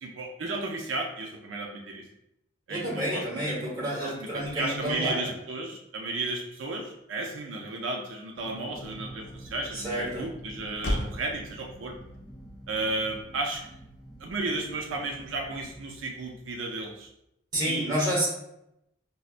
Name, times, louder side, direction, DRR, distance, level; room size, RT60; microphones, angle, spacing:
voice 1, 0.0-2.0 2.7-11.9 12.7-13.6 14.2-17.1 17.7-17.9, right 2 dB, 90° right, 1 dB, 0.5 m, -34 dB
voice 2, 2.7-5.3 9.7-10.3 17.5-18.3, equal, 20° right, -7 dB, 1.3 m, -29 dB
sound 1, 8.4-17.1, right 1 dB, ahead, 0.6 m, -47 dB
Motor vehicle (road), 10.4-15.4, left 1 dB, 60° left, 0.5 m, -40 dB
5.4 x 2.1 x 2.4 m, 0.83 s
head